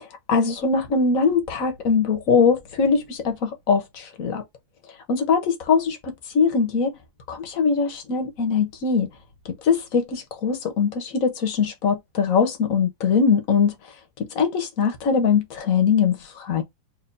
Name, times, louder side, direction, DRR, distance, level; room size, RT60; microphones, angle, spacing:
voice 1, 0.0-4.4 5.1-7.0 7.3-9.1 9.6-13.7 14.3-16.6, left 5 dB, 50° left, 1.2 m, -22 dB
4.5 x 2.8 x 2.6 m
omnidirectional pair, 2.0 m